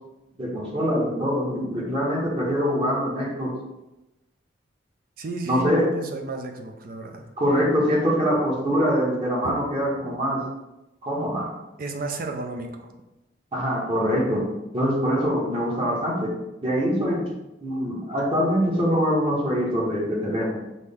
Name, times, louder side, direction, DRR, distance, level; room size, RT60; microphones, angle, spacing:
voice 1, 0.4-3.5 5.5-5.8 7.4-10.4 11.0-11.5 13.5-14.4 14.7-16.3 16.6-17.3 17.6-20.6, equal, 30° right, -4 dB, 1.0 m, -24 dB
voice 2, 5.2-7.3 9.4-9.5 11.8-12.9, right 3 dB, 50° right, 4 dB, 0.4 m, -33 dB
6.1 x 2.1 x 3.5 m, 0.97 s
head